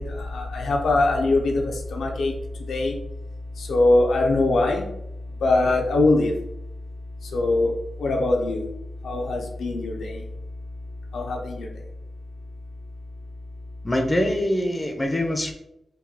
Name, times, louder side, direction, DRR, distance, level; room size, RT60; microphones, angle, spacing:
voice 1, 0.0-2.3 2.7-3.0 3.6-4.9 5.4-6.3 7.3-7.7 8.0-8.6 9.0-10.3 11.1-11.7, left 2 dB, 90° left, 0 dB, 0.5 m, -22 dB
voice 2, 13.8-15.5, left 1 dB, 20° left, 4 dB, 0.5 m, -24 dB
3.8 x 2.2 x 2.8 m, 0.82 s
cardioid pair, 60°, 0 cm